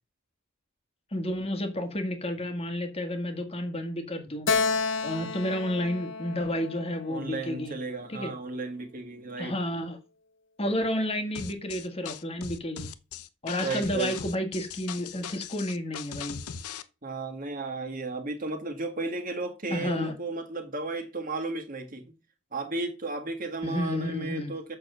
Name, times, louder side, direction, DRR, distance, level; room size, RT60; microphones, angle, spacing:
voice 1, 1.1-4.8 5.0-7.7 8.1-8.3 9.4-10.0 10.6-12.9 13.4-16.4 19.7-20.1 23.6-24.5, left 1 dB, 25° left, 1.7 m, -31 dB
Keyboard (musical), 4.5-7.9, left 4 dB, 55° left, 0.9 m, -31 dB
voice 2, 7.1-9.9 13.6-14.1 17.0-22.0 22.5-24.8, right 3 dB, 40° right, 1.7 m, -34 dB
sound 1, 11.3-16.8, left 7 dB, 90° left, 0.8 m, -39 dB
7.5 x 6.5 x 6.8 m
head